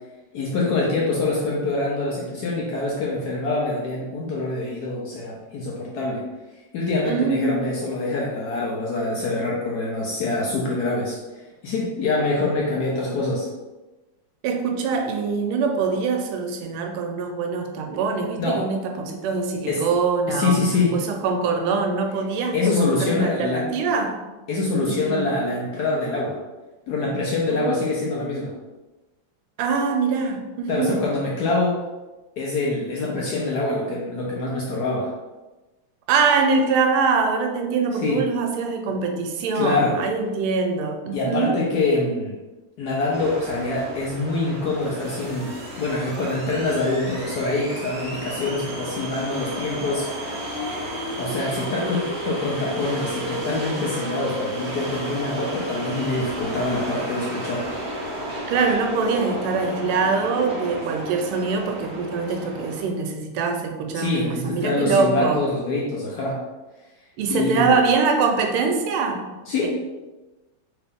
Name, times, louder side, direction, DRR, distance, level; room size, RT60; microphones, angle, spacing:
voice 1, 0.3-6.2 6.7-13.5 18.4-18.7 19.7-19.9 20.3-21.0 22.5-23.7 24.5-26.4 26.9-28.5 30.7-31.8 32.4-35.1 38.0-38.3 39.5-40.0 41.1-42.4 42.8-50.4 51.2-57.7 63.9-66.4 67.3-67.8 69.5-69.7, left 2 dB, 70° left, -4 dB, 1.0 m, -25 dB
voice 2, 7.0-7.7 14.4-20.7 20.9-24.2 24.8-25.2 27.5-27.6 29.6-31.1 36.1-41.6 58.5-65.4 67.2-69.3 69.6-69.7, right 4 dB, 90° right, 4 dB, 1.5 m, -23 dB
sound 1, 43.0-62.9, equal, 55° right, 1.2 m, -32 dB
3.4 x 2.8 x 3.5 m, 1.1 s
omnidirectional pair, 2.3 m